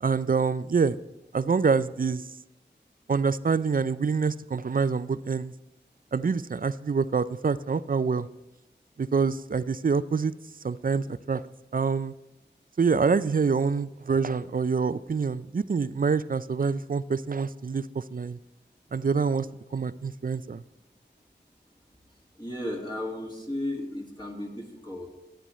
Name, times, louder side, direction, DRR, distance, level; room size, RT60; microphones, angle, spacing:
voice 1, 0.0-1.0 1.3-2.3 3.1-5.5 6.1-8.3 9.0-10.3 10.6-11.4 11.7-12.1 12.8-18.4 18.9-19.5 19.7-20.6, right 5 dB, 50° right, 15 dB, 0.4 m, -26 dB
voice 2, 22.3-25.1, left 1 dB, 25° left, -2 dB, 2.0 m, -34 dB
13.5 x 9.0 x 3.1 m, 0.92 s
wide cardioid pair, 45°, 19 cm